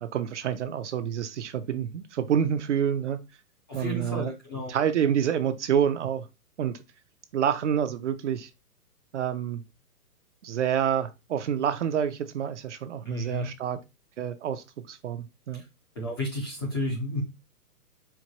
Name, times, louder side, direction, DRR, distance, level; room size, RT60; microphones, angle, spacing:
voice 1, 0.0-3.2 3.7-4.3 4.7-6.3 6.6-6.8 7.3-8.5 9.1-9.6 10.4-13.8 14.2-15.6, right 8 dB, 50° right, 0.5 m, -28 dB
voice 2, 3.7-4.7 13.0-13.5 15.5-15.7 16.0-17.2, left 1 dB, 15° left, 0.4 m, -32 dB
4.5 x 2.2 x 2.8 m
hypercardioid pair, 140°, 47 cm